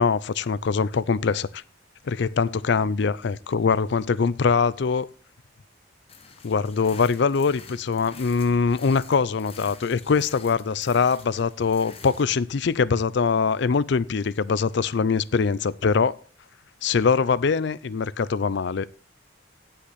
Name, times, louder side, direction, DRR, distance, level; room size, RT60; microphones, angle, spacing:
voice 1, 0.0-1.6 2.0-5.1 6.4-16.2 16.8-18.9, left 5 dB, 60° left, 0.5 m, -23 dB
sound 1, 6.1-12.2, left 5 dB, 30° left, 1.1 m, -47 dB
16.0 x 5.8 x 4.1 m
head